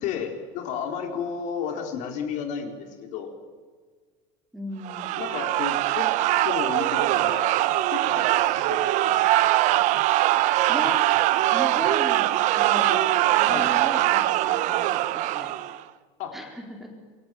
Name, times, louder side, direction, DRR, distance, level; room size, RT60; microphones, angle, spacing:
voice 1, 0.0-3.3 5.2-6.1 6.4-9.1 13.5-13.7 16.2-16.4, left 7 dB, 50° left, 5 dB, 4.1 m, -33 dB
voice 2, 4.5-5.2 10.7-11.0 11.5-12.3 12.6-15.5 16.3-16.9, equal, ahead, 2 dB, 4.3 m, -35 dB
sound 1, 4.9-15.8, right 15 dB, 50° right, 1.1 m, -22 dB
27.5 x 23.0 x 9.2 m, 1.5 s
cardioid pair, 165°, 16 cm